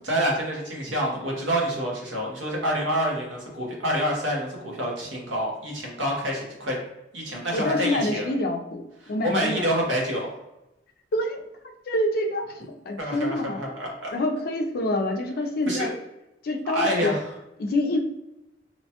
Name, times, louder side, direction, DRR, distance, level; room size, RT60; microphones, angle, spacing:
voice 1, 0.0-6.8 7.1-8.3 9.2-10.4 13.0-14.1 15.7-15.9 16.6-17.2, equal, 85° right, -2 dB, 0.9 m, -27 dB
voice 2, 7.5-8.8 9.1-9.7 11.1-11.5 11.9-13.8 14.1-15.9 16.4-17.2 17.6-18.0, left 1 dB, 55° left, 3 dB, 0.4 m, -26 dB
2.9 x 2.1 x 2.8 m, 0.90 s
head